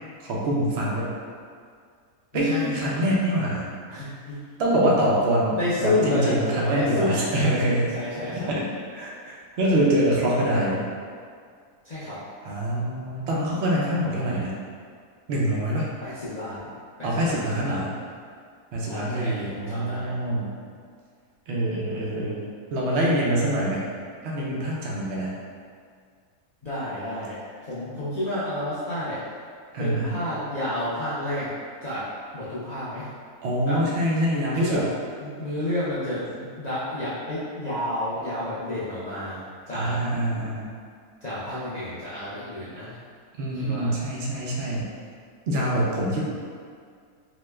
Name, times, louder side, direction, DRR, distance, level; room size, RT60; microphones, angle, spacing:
voice 1, 0.2-1.1 2.3-4.0 4.6-7.9 8.5-8.6 8.9-10.9 12.4-14.5 15.3-15.9 17.0-18.0 18.7-20.5 21.5-22.4 22.7-23.8 24.2-25.3 29.7-30.2 33.4-34.9 39.7-40.7 43.4-44.9 45.5-46.2, right 1 dB, 65° right, -4 dB, 0.6 m, -25 dB
voice 2, 2.3-3.0 3.9-4.4 5.6-7.6 7.9-8.6 11.8-12.2 16.0-16.7 17.0-17.9 18.8-20.1 26.6-29.2 29.8-31.5 31.8-33.1 33.6-33.8 34.5-34.9 35.2-40.0 41.2-43.0 43.6-43.9, left 1 dB, 75° left, -12 dB, 0.3 m, -30 dB
3.0 x 2.1 x 3.3 m, 2.1 s
omnidirectional pair, 1.6 m